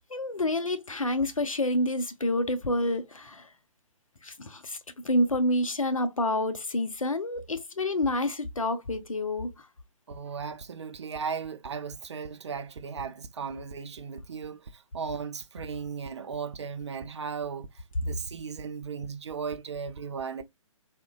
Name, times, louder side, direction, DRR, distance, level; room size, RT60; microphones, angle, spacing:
voice 1, 0.1-3.5 4.2-9.5, left 1 dB, 80° left, 0.6 m, -28 dB
voice 2, 10.1-20.4, right 6 dB, 55° right, 0.5 m, -36 dB
3.6 x 2.1 x 2.2 m
figure-of-eight pair, 130°, 17 cm